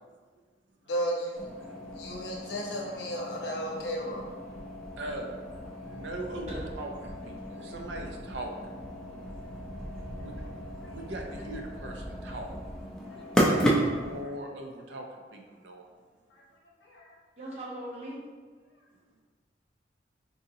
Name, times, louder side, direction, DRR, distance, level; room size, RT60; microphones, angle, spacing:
voice 1, 0.8-1.5 1.9-4.3 9.9-10.0 10.8-10.9 16.3-16.4 16.8-17.1, equal, 70° left, -2 dB, 0.8 m, -34 dB
sound 1, 1.4-14.2, equal, 5° left, 0.4 m, -34 dB
voice 2, 5.0-5.4 5.8-6.5 6.8-8.5 10.2-10.4 10.9-12.5 13.3-15.9, right 2 dB, 75° right, 2 dB, 0.4 m, -39 dB
voice 3, 17.4-18.2, right 1 dB, 35° right, -6 dB, 0.8 m, -39 dB
3.8 x 2.7 x 2.7 m, 1.5 s
head